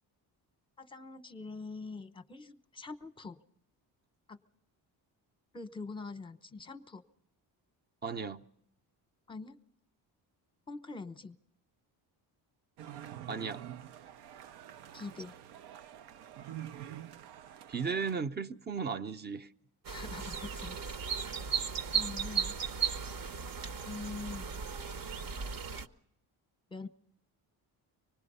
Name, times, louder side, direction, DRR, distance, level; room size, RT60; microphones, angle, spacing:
voice 1, 0.8-3.4 4.3-4.4 5.5-7.0 9.3-9.6 10.7-11.4 14.9-15.3 19.9-20.9 21.9-22.6 23.8-24.6 26.7-26.9, left 3 dB, 15° left, 0.9 m, -44 dB
voice 2, 8.0-8.4 13.3-13.6 17.7-19.5, right 5 dB, 25° right, 0.7 m, -35 dB
sound 1, 12.8-18.2, right 11 dB, 80° right, 0.7 m, -47 dB
sound 2, 19.8-25.9, right 6 dB, 60° right, 1.0 m, -36 dB
25.0 x 19.5 x 5.5 m
cardioid pair, 130°, 39 cm